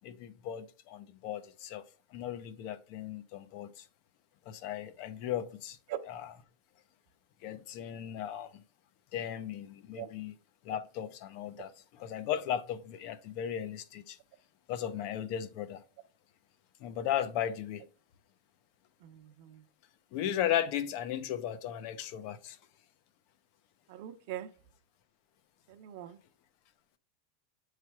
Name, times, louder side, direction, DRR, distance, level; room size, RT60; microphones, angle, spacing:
voice 1, 0.0-1.8 2.1-3.9 4.5-5.8 6.1-6.3 7.4-8.5 9.1-10.3 10.6-14.2 14.7-15.8 16.8-17.8 20.1-22.6, left 10 dB, 50° left, 0.7 m, -36 dB
voice 2, 19.0-19.6 23.9-24.5 25.7-26.2, right 12 dB, 60° right, 0.7 m, -42 dB
8.5 x 3.3 x 4.6 m
supercardioid pair, 160°, 0 cm